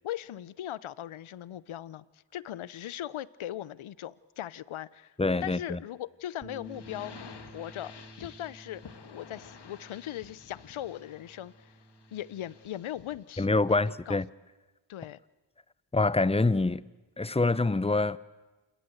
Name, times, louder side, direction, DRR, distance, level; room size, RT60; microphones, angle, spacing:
voice 1, 0.0-2.0 2.3-5.1 5.4-7.9 8.2-11.7 12.1-14.2 14.9-15.2, left 12 dB, 85° left, 0.8 m, -39 dB
voice 2, 5.2-5.8 13.4-14.3 15.9-16.8 17.2-18.2, left 3 dB, 15° left, 0.8 m, -25 dB
Bass guitar, 6.4-12.7, right 1 dB, 10° right, 1.7 m, -52 dB
sound 1, 6.6-13.3, left 6 dB, 55° left, 1.9 m, -51 dB
27.5 x 21.5 x 8.0 m
cardioid pair, 55°, 47 cm